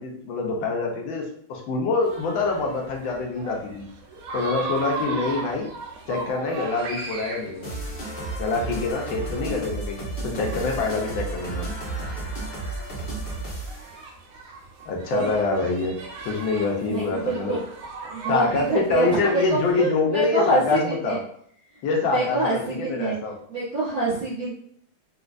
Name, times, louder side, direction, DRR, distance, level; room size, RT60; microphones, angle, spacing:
voice 1, 0.0-3.8 4.3-5.7 6.1-7.7 8.4-11.7 14.8-15.9 16.2-17.6 18.3-21.2 21.8-23.4, left 4 dB, 75° left, 1 dB, 1.4 m, -25 dB
sound 1, 2.0-19.7, right 4 dB, 90° right, 1.5 m, -38 dB
sound 2, 7.6-13.9, right 2 dB, 50° left, 0.6 m, -32 dB
voice 2, 16.8-17.6 18.1-21.2 22.0-23.2 23.5-24.5, right 3 dB, 50° right, -12 dB, 1.5 m, -26 dB
4.2 x 2.3 x 2.5 m, 0.63 s
omnidirectional pair, 2.2 m